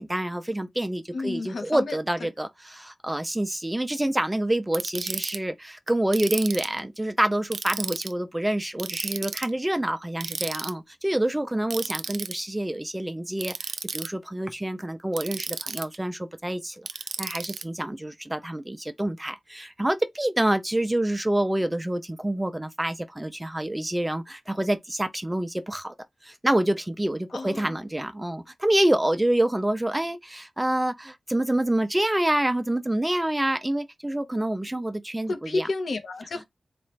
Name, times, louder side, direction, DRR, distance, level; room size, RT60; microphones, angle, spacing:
voice 1, 0.0-16.9 17.2-25.9 26.2-35.7, right 1 dB, 10° right, 0.3 m, -27 dB
voice 2, 1.1-2.0 27.3-27.8 35.3-36.5, left 3 dB, 70° left, 0.8 m, -31 dB
Ratchet pawl, 4.7-5.4 6.1-6.8 7.5-8.1 8.8-9.5 10.2-10.7 11.7-12.3 13.4-14.1 15.1-16.0 16.9-17.6, right 5 dB, 90° right, 0.3 m, -33 dB
4.1 x 2.3 x 3.2 m
wide cardioid pair, 160°, 0 cm